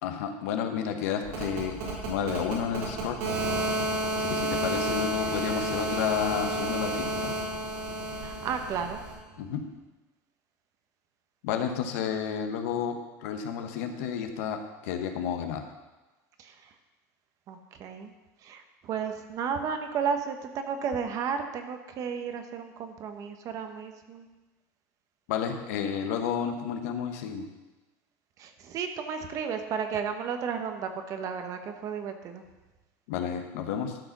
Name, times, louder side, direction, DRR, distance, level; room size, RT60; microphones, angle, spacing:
voice 1, 0.0-1.8 2.1-3.2 4.1-7.3 9.4-9.6 11.4-15.6 25.3-27.5 33.1-34.0, left 8 dB, 85° left, 5 dB, 1.2 m, -31 dB
sound 1, 1.2-9.1, right 1 dB, 85° right, 3.6 m, -31 dB
voice 2, 8.2-9.0 16.4-16.5 17.5-18.1 18.4-24.3 28.4-32.4, right 6 dB, 45° right, 7 dB, 1.1 m, -33 dB
12.0 x 5.0 x 6.0 m, 1.1 s
supercardioid pair, 135°, 8 cm